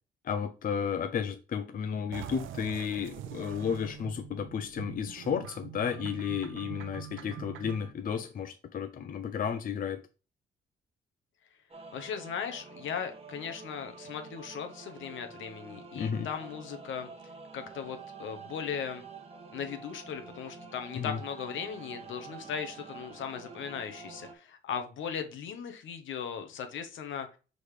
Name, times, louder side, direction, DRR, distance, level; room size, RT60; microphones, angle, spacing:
voice 1, 0.2-10.0 16.0-16.3 21.0-21.2, left 7 dB, 45° left, 0.6 m, -33 dB
sound 1, 2.1-7.9, right 10 dB, 80° right, 0.6 m, -44 dB
sound 2, 11.7-24.3, right 5 dB, 30° right, 1.2 m, -48 dB
voice 2, 11.9-17.1 17.5-19.0 19.5-27.4, left 7 dB, 75° left, 1.2 m, -38 dB
5.0 x 4.1 x 4.8 m
cardioid pair, 90°, 20 cm